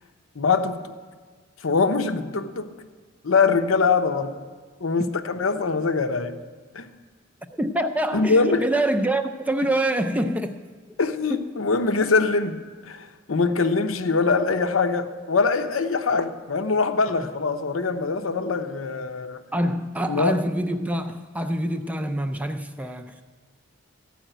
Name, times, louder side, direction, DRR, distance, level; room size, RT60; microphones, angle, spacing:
voice 1, 0.4-0.8 1.6-2.7 3.2-4.4 4.8-6.4 6.7-6.9 8.1-8.7 11.0-19.4 20.1-20.4, left 4 dB, 85° left, 8 dB, 0.8 m, -23 dB
voice 2, 7.5-10.6 11.3-11.5 19.5-23.2, right 1 dB, 5° right, 7 dB, 0.4 m, -26 dB
14.5 x 5.0 x 9.0 m, 1.4 s
head